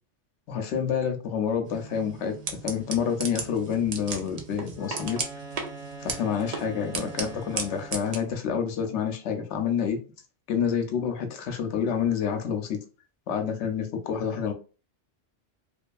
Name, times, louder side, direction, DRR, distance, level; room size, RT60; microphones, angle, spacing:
voice 1, 0.5-5.2 6.0-10.0 10.5-12.8 13.3-14.5, left 7 dB, 75° left, 0.9 m, -28 dB
sound 1, 1.7-8.2, right 5 dB, 60° right, 0.4 m, -36 dB
Wind instrument woodwind instrument, 4.7-8.4, right 2 dB, 45° left, 0.8 m, -43 dB
2.6 x 2.4 x 2.3 m
omnidirectional pair, 1.2 m